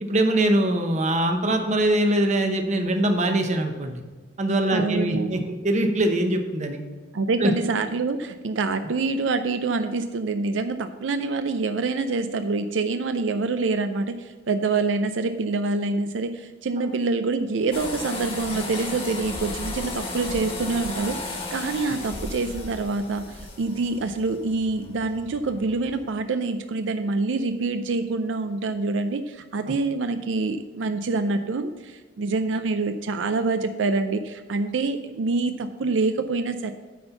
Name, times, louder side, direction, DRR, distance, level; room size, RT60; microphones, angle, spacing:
voice 1, 0.0-4.0 4.4-6.8 7.4-7.5, right 1 dB, 40° right, 5 dB, 0.9 m, -22 dB
voice 2, 4.7-5.4 7.1-36.7, right 3 dB, 85° right, 9 dB, 0.5 m, -26 dB
sound 1, 17.7-26.1, left 2 dB, 30° left, 1.4 m, -35 dB
9.3 x 4.4 x 6.8 m, 1.3 s
head